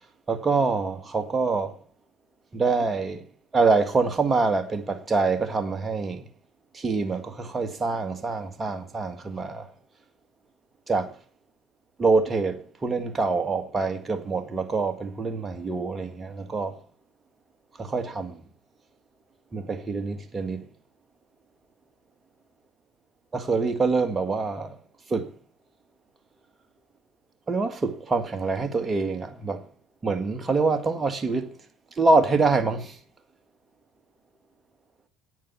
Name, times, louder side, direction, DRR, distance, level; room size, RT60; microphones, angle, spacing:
voice 1, 0.3-1.8 2.5-3.3 3.5-6.3 6.7-9.7 10.9-11.1 12.0-16.8 17.8-18.4 19.5-20.7 23.3-24.8 25.1-25.3 27.5-29.7 30.0-31.5 32.0-33.0, right 4 dB, 25° right, 1.8 m, -25 dB
9.5 x 9.3 x 7.2 m
hypercardioid pair, 70°, 0 cm